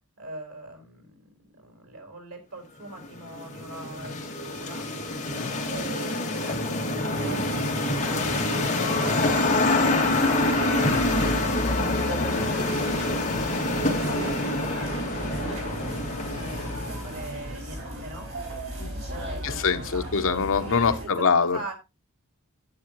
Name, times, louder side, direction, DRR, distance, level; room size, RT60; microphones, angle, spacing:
voice 1, 0.2-4.9 5.6-11.7 13.7-14.7 15.1-18.3 19.1-19.6 19.9-20.5 21.0-21.7, right 2 dB, 85° right, 4.0 m, -42 dB
sound 1, 3.0-17.5, left 2 dB, 35° left, 2.1 m, -26 dB
sound 2, 9.0-21.0, right 1 dB, 70° right, 5.0 m, -35 dB
voice 2, 19.4-21.6, left 5 dB, 60° left, 0.9 m, -24 dB
10.0 x 9.6 x 3.0 m
head